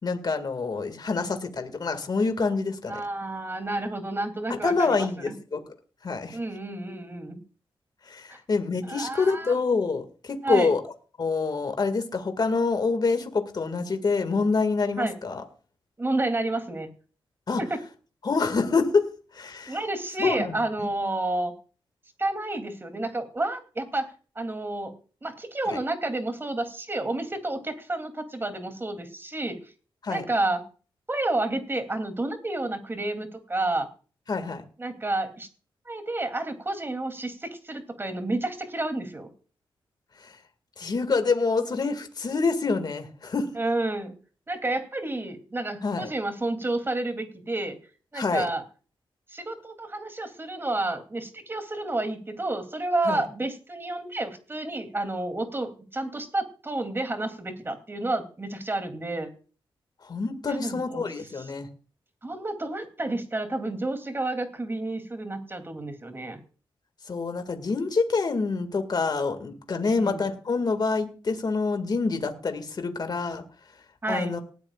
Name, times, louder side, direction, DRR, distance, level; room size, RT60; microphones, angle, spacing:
voice 1, 0.0-3.0 4.5-5.6 6.0-6.4 8.1-10.8 11.2-15.4 17.5-17.6 18.2-19.0 19.4-19.8 20.2-20.9 25.7-25.8 30.0-30.2 34.3-34.6 40.8-43.5 45.8-46.1 48.1-48.5 53.1-53.2 60.1-61.7 67.1-73.4 74.1-74.4, left 4 dB, 45° left, 8 dB, 2.1 m, -26 dB
voice 2, 2.8-5.3 6.3-7.4 8.3-8.4 8.8-9.5 10.4-10.7 15.0-15.2 16.0-16.9 17.6-17.8 19.7-21.5 22.2-24.9 25.2-29.6 30.1-30.6 31.1-33.9 34.8-35.5 35.8-39.3 43.5-44.1 44.5-47.8 48.1-48.6 49.3-59.3 60.5-61.1 61.4-61.5 62.2-66.4 69.9-70.2 74.0-74.4, right 2 dB, 25° right, 7 dB, 3.0 m, -30 dB
19.0 x 13.5 x 2.5 m, 0.38 s
wide cardioid pair, 105°, 9 cm